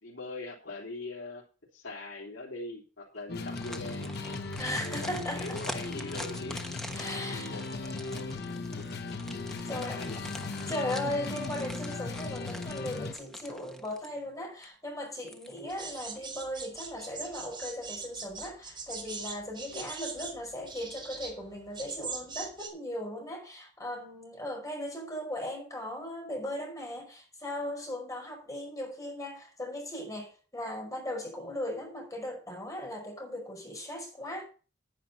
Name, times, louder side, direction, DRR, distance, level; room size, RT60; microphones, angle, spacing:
voice 1, 0.0-1.4 1.7-4.2 4.8-6.6 7.1-7.7 8.1-8.3 8.6-9.0 9.7-10.3 19.7-19.9, left 2 dB, 80° left, 3.3 m, -42 dB
sound 1, 3.3-13.1, left 3 dB, 60° left, 1.1 m, -37 dB
sound 2, 3.3-14.3 14.6-14.7 15.2-15.8 16.2-16.3, equal, 5° left, 1.2 m, -45 dB
voice 2, 4.6-5.9 6.9-7.6 9.6-10.2 10.5-34.4, left 1 dB, 20° left, 5.2 m, -38 dB
sound 3, 15.7-22.7, right 5 dB, 25° right, 3.7 m, -41 dB
10.0 x 10.0 x 4.2 m
head